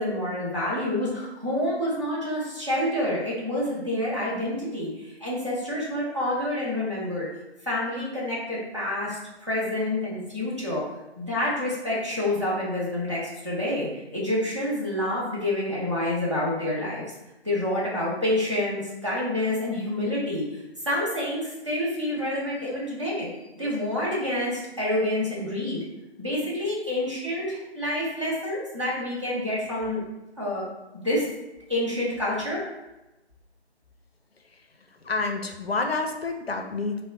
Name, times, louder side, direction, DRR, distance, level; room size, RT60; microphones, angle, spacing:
voice 1, 0.0-4.9 5.2-7.3 7.7-10.8 11.2-17.0 17.4-20.4 20.9-23.3 23.5-25.8 26.2-30.0 30.4-30.6 30.9-31.2 31.7-32.6, left 1 dB, 25° right, -7 dB, 0.7 m, -28 dB
voice 2, 35.0-37.0, left 3 dB, 65° left, 4 dB, 0.5 m, -28 dB
2.8 x 2.1 x 3.8 m, 0.98 s
figure-of-eight pair, 160°, 34 cm